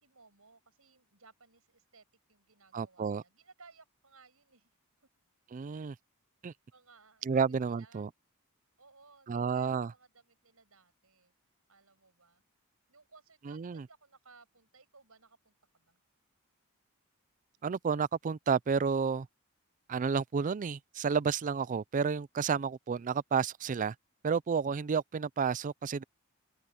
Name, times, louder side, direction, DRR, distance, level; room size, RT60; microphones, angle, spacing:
voice 1, 0.0-4.7 5.0-5.1 5.7-5.9 6.7-8.1 8.8-11.3 11.7-12.4 12.9-16.0 17.6-17.7, right 4 dB, 70° right, 8.0 m, -61 dB
voice 2, 2.7-3.2 5.5-5.9 6.4-6.5 7.2-8.1 9.3-9.9 13.4-13.9 17.6-19.3 19.9-23.9 24.2-26.0, right 6 dB, 35° right, 0.4 m, -31 dB
open air
head